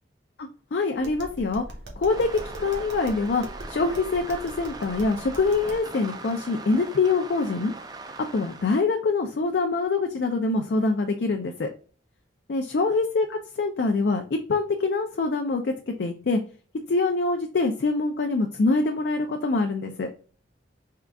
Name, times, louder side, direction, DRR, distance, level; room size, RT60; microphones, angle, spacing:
voice 1, 0.4-1.6 2.0-7.7 8.3-11.7 12.5-15.7 16.0-16.4 16.9-20.1, left 3 dB, 60° left, 4 dB, 0.4 m, -25 dB
Tap, 0.9-5.9, right 1 dB, 70° right, 1.0 m, -41 dB
sound 1, 2.1-8.8, right 3 dB, 20° right, 0.3 m, -41 dB
3.7 x 2.3 x 3.4 m, 0.39 s
head